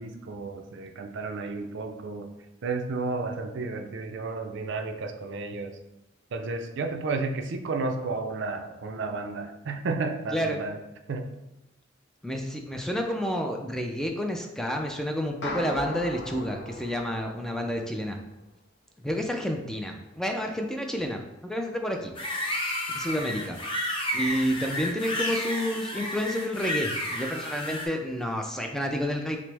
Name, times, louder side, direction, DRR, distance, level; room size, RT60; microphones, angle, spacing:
voice 1, 0.0-2.3 2.6-5.8 6.3-10.8 11.1-11.3, right 3 dB, 65° right, 5 dB, 0.4 m, -32 dB
voice 2, 12.2-18.2 19.0-22.1 22.9-23.6 24.1-29.4, equal, 5° left, 3 dB, 0.3 m, -30 dB
sound 1, 15.4-17.9, left 1 dB, 60° left, 0.7 m, -37 dB
sound 2, 22.1-27.8, left 1 dB, 25° left, 0.7 m, -31 dB
5.9 x 2.0 x 3.3 m, 0.97 s
head